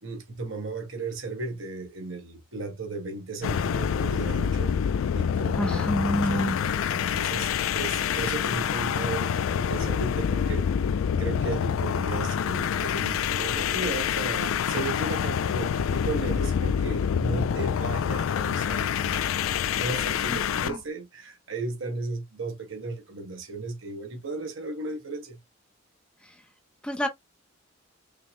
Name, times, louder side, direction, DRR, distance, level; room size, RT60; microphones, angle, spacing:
voice 1, 0.0-4.8 5.1-10.7 11.2-19.3 19.7-25.4, right 3 dB, 65° right, 1.6 m, -35 dB
sound 1, 3.4-20.8, left 8 dB, 75° left, 0.3 m, -27 dB
voice 2, 5.6-6.6 26.8-27.1, equal, 5° left, 0.5 m, -27 dB
5.7 x 2.1 x 3.6 m
head